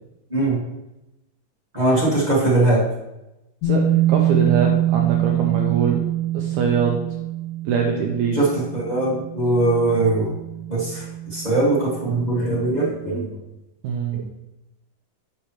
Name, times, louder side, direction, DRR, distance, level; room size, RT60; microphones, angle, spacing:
voice 1, 1.7-2.8 8.3-10.3 10.7-13.4, right 2 dB, 40° right, -7 dB, 0.6 m, -21 dB
sound 1, 3.6-13.1, right 9 dB, 80° left, 2.4 m, -25 dB
voice 2, 3.6-6.0 6.3-7.0 7.7-8.4 13.8-14.2, right 6 dB, 80° right, 1 dB, 1.9 m, -23 dB
8.2 x 5.6 x 3.0 m, 0.95 s
omnidirectional pair, 3.9 m